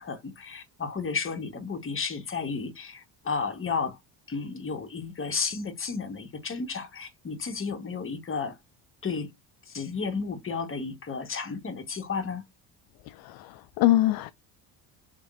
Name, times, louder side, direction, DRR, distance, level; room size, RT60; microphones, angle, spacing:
voice 1, 0.0-4.0 4.3-8.5 9.0-9.3 9.7-12.4, left 5 dB, 30° left, 1.4 m, -32 dB
voice 2, 13.1-14.3, left 15 dB, 60° left, 0.5 m, -24 dB
3.7 x 3.5 x 2.6 m
supercardioid pair, 75°, 42 cm